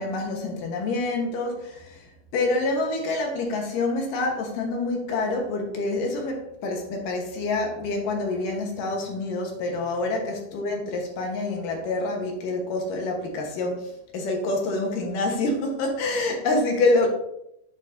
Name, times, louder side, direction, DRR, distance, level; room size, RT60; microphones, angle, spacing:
voice 1, 0.0-2.0 2.3-17.1, left 2 dB, 75° left, 2 dB, 2.8 m, -27 dB
8.8 x 6.6 x 2.7 m, 0.79 s
omnidirectional pair, 4.0 m